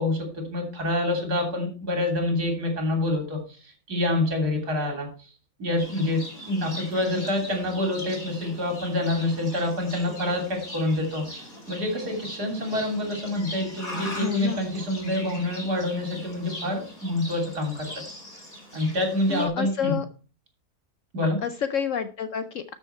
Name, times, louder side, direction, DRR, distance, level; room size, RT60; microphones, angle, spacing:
voice 1, 0.0-5.1 5.6-11.3 11.7-18.0 18.7-20.0 21.1-21.4, left 1 dB, 70° right, 3 dB, 3.7 m, -27 dB
Livestock farm animals working animals, 5.8-19.5, left 1 dB, 30° left, 3.7 m, -40 dB
voice 2, 14.2-14.6 19.3-20.1 21.4-22.7, left 8 dB, 65° left, 11 dB, 0.8 m, -29 dB
12.5 x 6.6 x 4.4 m, 0.36 s
omnidirectional pair, 1.7 m